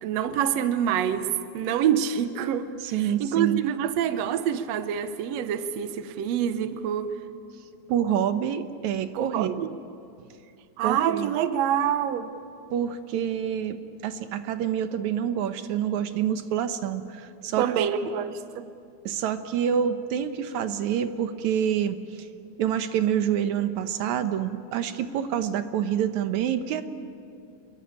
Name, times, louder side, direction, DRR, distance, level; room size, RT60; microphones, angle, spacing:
voice 1, 0.0-7.1 9.1-9.7 10.8-12.3 17.6-18.7, right 9 dB, 85° right, 10 dB, 1.5 m, -26 dB
voice 2, 2.8-3.6 7.9-9.5 10.8-11.4 12.7-13.8 14.0-18.1 19.1-22.0 22.6-26.8, right 9 dB, 70° right, 9 dB, 1.9 m, -27 dB
27.5 x 22.5 x 8.9 m, 2.4 s
omnidirectional pair, 4.3 m